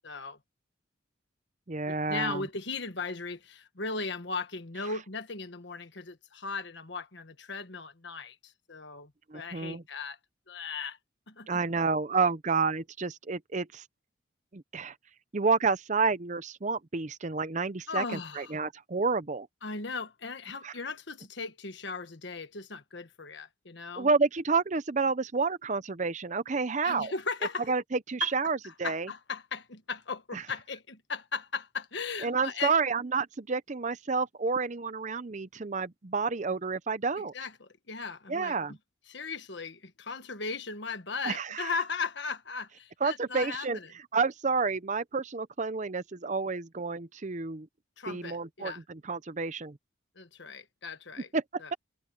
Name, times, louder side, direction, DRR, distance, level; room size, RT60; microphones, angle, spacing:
voice 1, 0.0-0.4 1.9-10.2 10.5-11.0 11.3-11.6 17.9-18.6 19.6-24.1 26.8-27.7 28.2-28.3 28.6-32.7 37.3-38.8 39.1-43.9 48.0-48.8 50.1-51.3 51.6-51.7, left 4 dB, 60° left, 1.5 m, -37 dB
voice 2, 1.7-2.4 9.3-9.8 11.5-13.8 14.5-14.9 15.3-18.0 18.4-19.5 20.6-20.7 24.0-27.1 27.7-29.1 30.3-30.4 32.2-37.3 38.3-38.8 41.2-41.7 43.0-43.8 44.1-47.7 48.1-49.8 51.3-51.7, right 4 dB, 35° right, 0.6 m, -30 dB
head